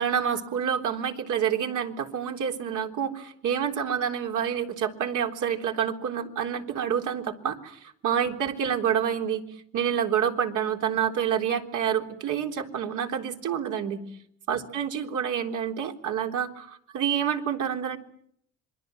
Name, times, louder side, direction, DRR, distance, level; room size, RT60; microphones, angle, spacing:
voice 1, 0.0-9.4 9.7-14.0 14.5-18.0, right 8 dB, 85° right, 3 dB, 3.6 m, -28 dB
27.0 x 23.5 x 7.7 m, 0.71 s
cardioid pair, 90°, 30 cm